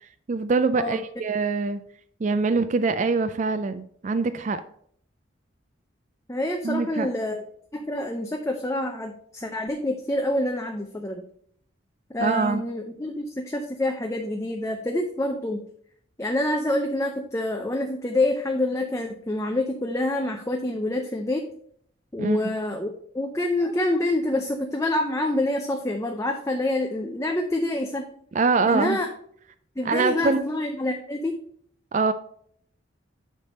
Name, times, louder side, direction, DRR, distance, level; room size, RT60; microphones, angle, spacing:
voice 1, 0.3-1.8 2.2-4.6 6.6-7.1 12.2-12.6 22.2-22.4 28.3-29.0 29.8-30.4 31.9-32.1, right 4 dB, 40° right, 11 dB, 0.3 m, -23 dB
voice 2, 6.3-7.5 7.7-11.2 12.1-15.6 16.2-21.5 22.1-28.0 28.6-29.1 29.8-31.4, left 1 dB, 15° left, 3 dB, 0.5 m, -27 dB
9.7 x 3.4 x 5.3 m, 0.63 s
head